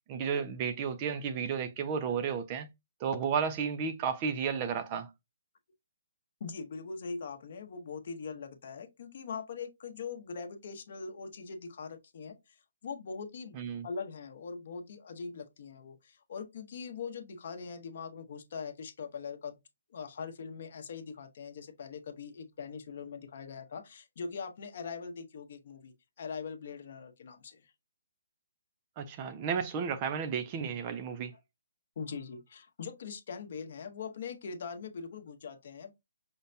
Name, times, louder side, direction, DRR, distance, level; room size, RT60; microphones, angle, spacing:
voice 1, 0.1-2.7 3.0-5.1 13.5-13.9 29.0-31.3, right 6 dB, 20° right, 0.3 m, -33 dB
voice 2, 6.4-12.5 12.8-19.6 19.9-27.7 32.0-36.0, left 5 dB, 45° left, 0.7 m, -42 dB
5.4 x 2.1 x 2.6 m
hypercardioid pair, 170°, 0 cm